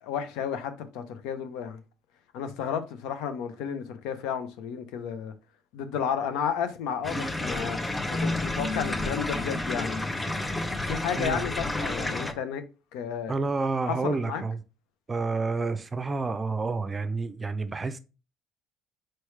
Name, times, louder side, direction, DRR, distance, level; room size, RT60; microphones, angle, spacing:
voice 1, 0.0-1.8 2.3-5.3 5.7-7.8 8.1-10.0 10.8-12.6 12.9-13.3 13.9-14.4, left 7 dB, 80° left, 0.6 m, -32 dB
sound 1, 7.0-12.3, left 2 dB, 15° left, 0.7 m, -30 dB
voice 2, 13.3-14.6 15.1-18.0, right 3 dB, 25° right, 0.5 m, -29 dB
4.4 x 3.1 x 3.2 m
supercardioid pair, 80°, 0 cm